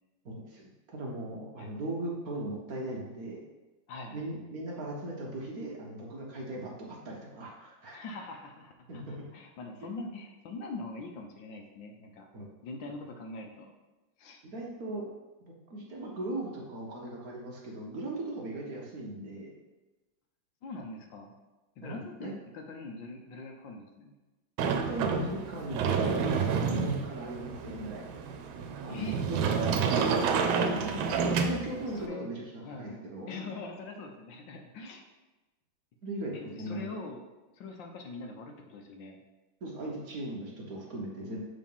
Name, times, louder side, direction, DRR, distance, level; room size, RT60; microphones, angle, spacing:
voice 1, 0.2-3.4 4.1-8.0 8.9-9.2 12.3-12.5 14.5-15.0 15.7-19.5 21.8-22.3 24.6-28.1 28.8-32.4 32.8-33.3 36.0-36.9 39.6-41.4, right 1 dB, 55° right, -2 dB, 1.3 m, -38 dB
voice 2, 3.9-4.3 7.9-12.3 12.6-13.7 14.2-14.4 20.6-21.3 21.8-24.2 28.9-29.2 31.9-32.3 32.6-35.0 36.3-37.2 37.5-39.2, left 3 dB, 75° left, 3 dB, 1.5 m, -43 dB
Sliding door, 24.6-32.1, right 5 dB, 90° right, 1.5 m, -29 dB
6.5 x 3.8 x 5.4 m, 1.1 s
omnidirectional pair, 2.1 m